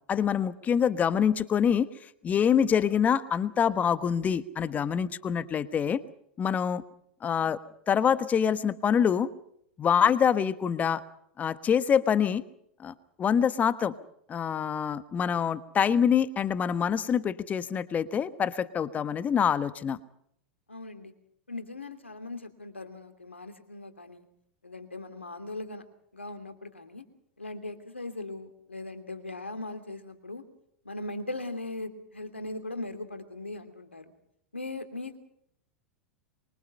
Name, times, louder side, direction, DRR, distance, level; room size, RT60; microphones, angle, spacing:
voice 1, 0.1-6.0 6.4-6.8 7.2-7.6 7.9-9.3 9.8-11.0 11.4-12.4 12.8-13.9 14.3-20.0, left 8 dB, 25° left, 14 dB, 1.2 m, -25 dB
voice 2, 20.7-21.1 21.5-24.2 24.6-25.8 26.1-27.0 27.4-30.4 30.8-34.0 34.5-35.2, left 2 dB, 85° left, 7 dB, 2.8 m, -39 dB
25.0 x 23.5 x 5.6 m, 0.71 s
figure-of-eight pair, 90°, 6 cm